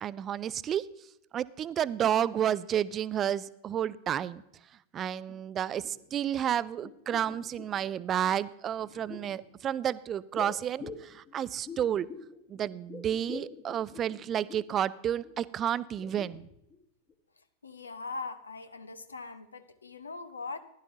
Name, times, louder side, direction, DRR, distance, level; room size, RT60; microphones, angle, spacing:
voice 1, 0.0-0.8 1.3-4.4 4.9-12.1 12.5-16.5, right 10 dB, 30° right, 18 dB, 0.4 m, -31 dB
sound 1, 5.3-5.4 5.7-6.5 6.8-8.0 8.7-9.4 10.3-12.4 12.7-14.8 15.2-15.4 15.8-16.8 17.1-17.2, left 4 dB, 25° left, 1.4 m, -46 dB
voice 2, 17.6-20.6, left 4 dB, 75° left, 11 dB, 0.9 m, -41 dB
15.0 x 11.5 x 2.8 m, 0.81 s
figure-of-eight pair, 90°, 0 cm